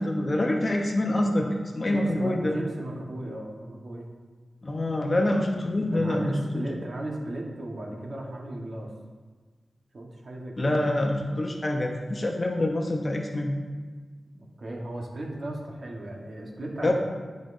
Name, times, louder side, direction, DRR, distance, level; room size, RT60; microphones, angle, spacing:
voice 1, 0.0-1.5 1.7-2.6 4.6-6.7 10.6-13.5 16.8-16.9, left 1 dB, 35° left, 2 dB, 0.8 m, -26 dB
voice 2, 1.8-4.1 5.9-8.9 9.9-10.7 14.3-16.9, right 1 dB, 55° right, -1 dB, 1.2 m, -36 dB
10.5 x 5.1 x 2.6 m, 1.4 s
wide cardioid pair, 105°, 0 cm